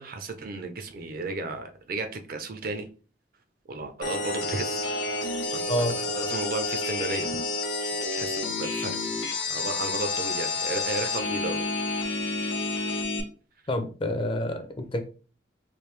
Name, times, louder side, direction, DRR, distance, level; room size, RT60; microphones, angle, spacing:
voice 1, 0.0-2.9 3.7-5.0 5.5-7.4 7.8-9.0 9.5-11.7, right 2 dB, 50° right, 6 dB, 0.5 m, -34 dB
sound 1, 4.0-13.2, left 3 dB, 85° left, 0.8 m, -29 dB
voice 2, 13.7-15.0, left 1 dB, 30° left, 7 dB, 0.5 m, -28 dB
3.3 x 2.6 x 3.2 m, 0.36 s
head